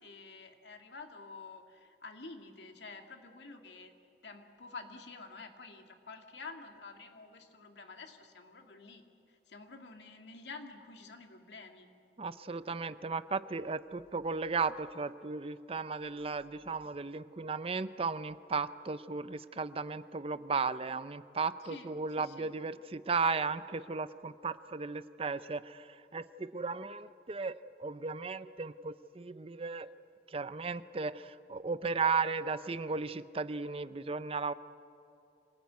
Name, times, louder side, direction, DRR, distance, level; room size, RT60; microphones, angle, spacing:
voice 1, 0.0-3.9 4.2-11.9 21.6-21.9 22.2-22.5, left 4 dB, 75° left, 4 dB, 2.3 m, -49 dB
voice 2, 12.2-29.9 30.3-34.5, right 4 dB, 30° right, 14 dB, 0.5 m, -35 dB
26.0 x 18.5 x 9.5 m, 2.7 s
head